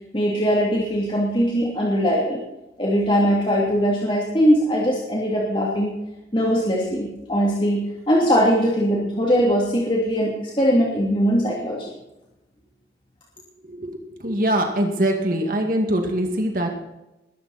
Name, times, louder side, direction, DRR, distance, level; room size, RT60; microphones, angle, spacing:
voice 1, 0.1-2.4 2.8-6.0 6.3-11.9, equal, 30° left, -4 dB, 3.0 m, -21 dB
voice 2, 13.6-16.7, right 1 dB, 50° right, 3 dB, 2.3 m, -23 dB
20.5 x 12.5 x 4.4 m, 0.94 s
head